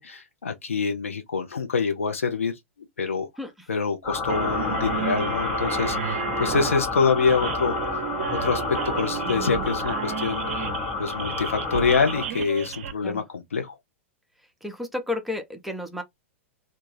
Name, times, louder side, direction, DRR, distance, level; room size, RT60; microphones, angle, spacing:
voice 1, 0.0-2.5 3.0-3.3 3.7-7.7 8.3-10.6 11.0-13.8, left 5 dB, 75° left, 0.7 m, -26 dB
voice 2, 3.4-3.7 13.0-13.2 14.6-16.0, left 2 dB, ahead, 0.6 m, -32 dB
sound 1, 4.0-12.3, left 4 dB, 40° left, 0.9 m, -30 dB
sound 2, 4.3-12.9, right 8 dB, 55° right, 0.5 m, -32 dB
2.5 x 2.3 x 3.2 m
figure-of-eight pair, 100°, 7 cm